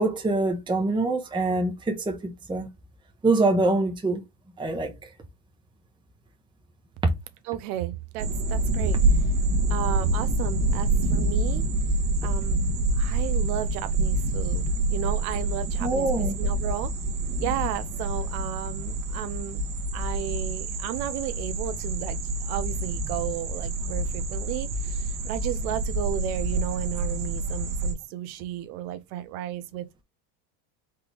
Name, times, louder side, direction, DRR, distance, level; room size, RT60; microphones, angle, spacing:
voice 1, 0.0-2.7 3.2-4.2 4.6-5.1 15.8-16.3, right 2 dB, 10° right, 0.9 m, -25 dB
voice 2, 7.4-9.2 9.7-11.7 12.2-12.7 13.0-16.9 17.4-19.6 19.9-30.0, right 12 dB, 75° right, 0.7 m, -33 dB
sound 1, 8.2-27.9, right 2 dB, 45° right, 1.4 m, -27 dB
4.3 x 3.4 x 3.4 m
supercardioid pair, 110°, 46 cm